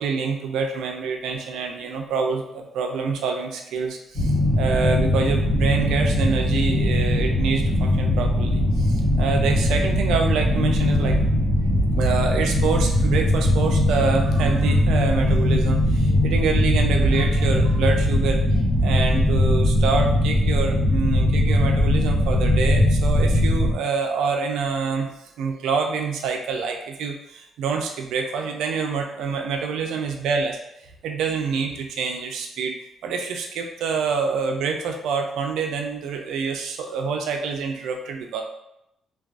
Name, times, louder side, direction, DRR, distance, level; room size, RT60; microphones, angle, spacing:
voice 1, 0.0-11.2 12.0-25.1 25.4-30.6 31.0-32.8 33.0-38.4, right 5 dB, 85° right, 3 dB, 0.3 m, -26 dB
sound 1, 4.1-23.7, left 1 dB, 75° left, 1.1 m, -20 dB
2.5 x 2.2 x 2.4 m, 0.82 s
cardioid pair, 90°, 0 cm